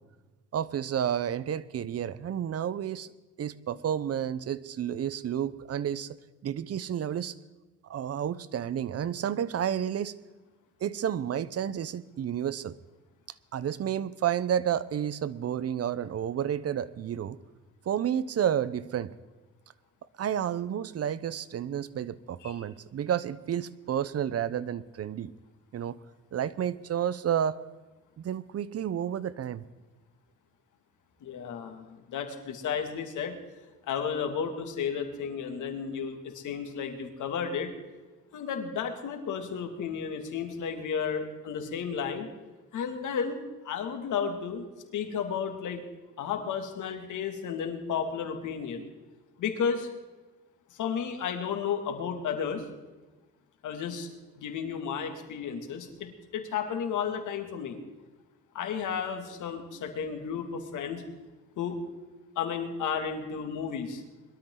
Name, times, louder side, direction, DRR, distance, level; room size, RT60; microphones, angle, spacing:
voice 1, 0.5-3.1 3.4-6.1 6.4-7.3 7.9-10.1 10.8-12.7 13.5-17.4 17.9-19.1 20.2-25.3 25.7-26.0 26.3-27.6 28.2-29.6, right 9 dB, 55° right, 17 dB, 0.9 m, -31 dB
voice 2, 31.2-33.4 33.9-37.7 38.3-42.3 42.7-44.6 44.9-45.8 46.2-48.8 49.4-49.9 50.7-52.6 53.6-54.1 54.4-57.8 58.5-61.0 61.6-61.8 62.4-64.0, left 7 dB, 80° left, 5 dB, 2.5 m, -33 dB
21.5 x 13.0 x 3.9 m, 1.2 s
cardioid pair, 90°, 30 cm